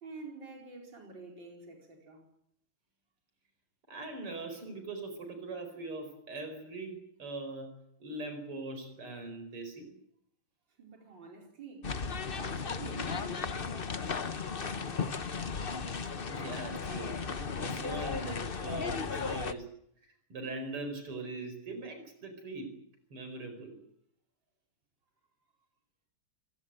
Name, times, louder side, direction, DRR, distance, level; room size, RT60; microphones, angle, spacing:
voice 1, 0.0-2.3 10.8-12.0 12.3-15.1, right 3 dB, 55° right, 5.3 m, -49 dB
voice 2, 3.9-9.9 16.3-19.7 20.3-22.8 23.1-23.8, right 2 dB, 85° right, 5.7 m, -41 dB
sound 1, 11.8-19.5, left 5 dB, 35° left, 0.9 m, -35 dB
28.0 x 17.5 x 9.1 m
omnidirectional pair, 2.4 m